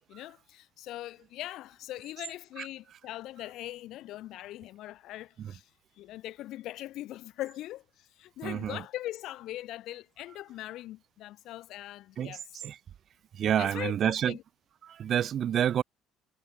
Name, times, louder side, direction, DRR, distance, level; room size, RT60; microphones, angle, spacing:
voice 1, 0.0-5.7 6.0-12.4 13.6-14.4, left 15 dB, 70° left, 1.4 m, -41 dB
voice 2, 8.4-8.8 12.2-12.8 13.3-14.4 14.8-15.8, right 9 dB, 55° right, 1.7 m, -29 dB
hypercardioid pair, 60°, 0 cm